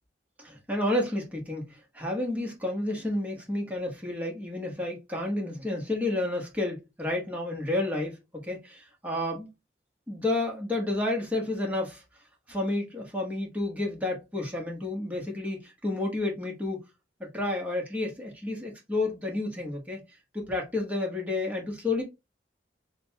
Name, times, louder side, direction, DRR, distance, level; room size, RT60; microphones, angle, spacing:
voice 1, 0.4-9.5 10.1-12.0 12.5-16.8 17.3-20.0 20.3-22.0, left 2 dB, 10° right, 1.2 m, -30 dB
6.3 x 2.3 x 2.8 m
head